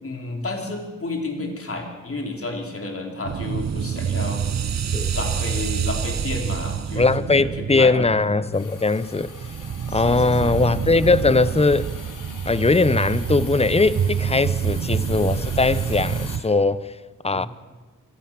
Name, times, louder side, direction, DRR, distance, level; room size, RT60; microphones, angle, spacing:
voice 1, 0.0-4.4 5.1-7.1 7.3-7.5 7.8-8.0 9.9-10.6 14.6-14.7 17.3-17.5, left 2 dB, 40° left, 3.8 m, -31 dB
sound 1, 3.2-16.4, right 8 dB, 55° right, 0.9 m, -27 dB
voice 2, 7.0-9.3 9.9-11.9 12.5-16.9 17.2-17.5, left 3 dB, 20° left, 0.8 m, -20 dB
Hiss, 8.5-16.4, left 4 dB, 70° left, 3.5 m, -41 dB
24.5 x 17.0 x 7.5 m
cardioid pair, 70°, 33 cm